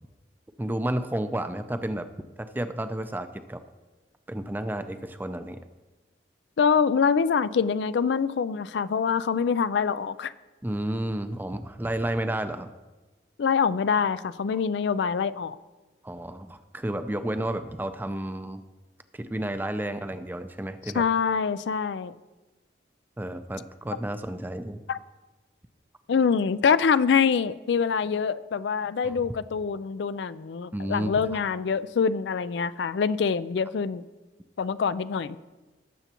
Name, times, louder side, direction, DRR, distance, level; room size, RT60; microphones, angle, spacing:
voice 1, 0.6-2.1 2.4-3.6 4.3-5.6 10.6-12.7 14.5-14.6 16.0-18.6 19.1-21.0 23.2-24.8 29.0-29.2 30.7-31.4, right 1 dB, 10° right, 9 dB, 0.4 m, -31 dB
voice 2, 6.6-10.3 13.4-15.6 20.9-22.1 24.9-25.0 26.1-34.0 34.6-35.4, left 6 dB, 70° left, 15 dB, 0.4 m, -25 dB
19.0 x 7.0 x 3.0 m, 1.2 s
head